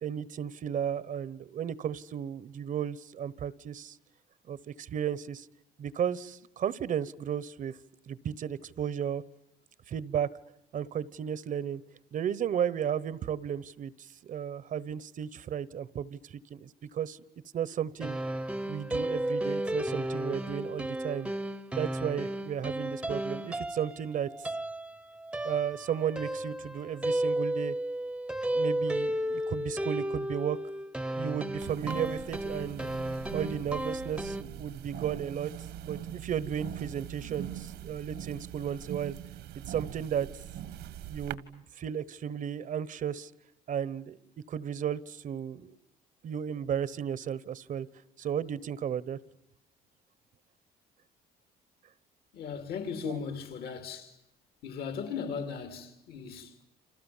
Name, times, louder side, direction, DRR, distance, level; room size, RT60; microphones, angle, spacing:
voice 1, 0.0-4.0 4.5-5.5 5.8-7.8 8.1-9.2 9.9-10.3 10.7-11.8 12.1-17.2 17.5-18.2 18.7-21.3 21.7-24.3 25.4-27.7 28.5-30.6 31.1-32.9 33.3-35.5 35.8-39.2 39.7-40.3 41.0-43.3 43.7-44.2 44.5-45.8 46.2-47.9 48.2-49.2 53.0-53.2, right 9 dB, 50° right, 1.1 m, -34 dB
sound 1, 18.0-34.4, right 1 dB, 5° right, 1.0 m, -33 dB
sound 2, 31.6-41.3, right 11 dB, 80° right, 1.7 m, -42 dB
voice 2, 52.3-54.1 54.6-56.6, left 6 dB, 65° left, 3.5 m, -37 dB
29.0 x 27.0 x 7.3 m
cardioid pair, 110°, 17 cm